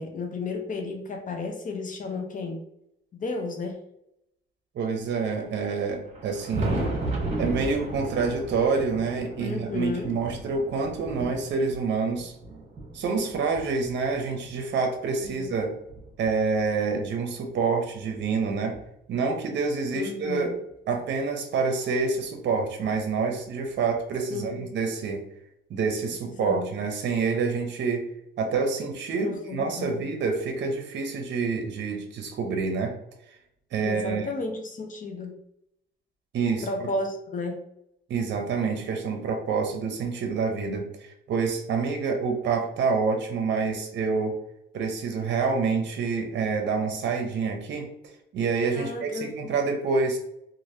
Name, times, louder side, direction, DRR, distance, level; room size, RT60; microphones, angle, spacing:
voice 1, 0.0-2.6 3.1-3.8 9.4-10.2 15.2-15.5 19.9-20.6 24.3-24.7 26.3-26.7 29.1-30.1 33.8-35.4 36.6-37.6 48.7-49.5, left 3 dB, 40° left, 3 dB, 0.6 m, -33 dB
voice 2, 4.7-6.9 7.4-12.3 12.9-15.7 16.2-18.7 19.1-20.5 20.9-25.2 25.7-28.0 28.4-32.9 33.7-34.3 36.3-36.7 38.1-44.3 44.7-47.9 48.3-50.2, right 4 dB, 65° right, 3 dB, 0.6 m, -27 dB
Thunder, 6.0-14.6 15.2-16.9 18.1-18.2 18.7-18.8 20.7-20.8 22.1-22.2 23.8-23.9, right 2 dB, 35° right, 1.2 m, -35 dB
3.1 x 2.5 x 2.6 m, 0.80 s
cardioid pair, 90°, 20 cm